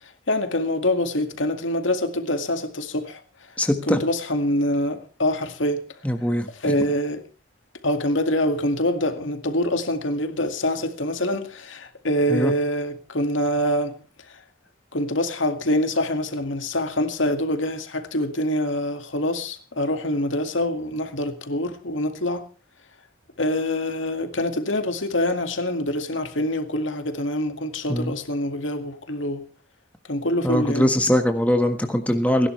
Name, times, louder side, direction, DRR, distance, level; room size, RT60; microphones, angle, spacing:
voice 1, 0.3-3.2 3.8-5.8 6.5-7.2 7.8-13.9 14.9-22.4 23.4-29.4 30.1-30.9, left 1 dB, 85° left, 2.1 m, -25 dB
voice 2, 3.6-4.0 6.0-6.5 12.3-12.5 27.9-28.2 30.4-32.5, equal, 5° left, 1.5 m, -21 dB
29.5 x 11.0 x 3.3 m
head